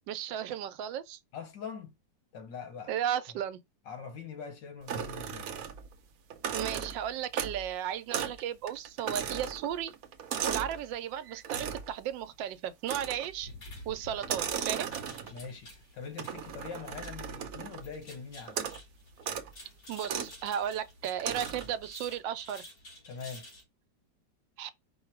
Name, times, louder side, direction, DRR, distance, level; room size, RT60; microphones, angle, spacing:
voice 1, 0.1-1.2 2.9-3.6 6.5-9.9 10.4-13.5 13.9-14.9 19.9-22.6 24.6-24.7, right 10 dB, 85° right, 1.3 m, -35 dB
voice 2, 1.3-1.9 2.3-2.9 3.9-5.6 15.3-18.7 23.1-23.5, left 6 dB, 80° left, 1.9 m, -43 dB
sound 1, 4.9-5.9 6.3-7.7 8.1-8.4 8.7-10.8 11.4-11.9 12.8-13.4 14.2-15.5 16.2-17.9 18.5-18.8 19.2-19.5 20.0-20.3 21.2-21.8, right 8 dB, 65° right, 1.0 m, -36 dB
sound 2, 12.9-23.6, left 1 dB, 50° left, 2.7 m, -51 dB
4.9 x 2.3 x 4.5 m
omnidirectional pair, 1.9 m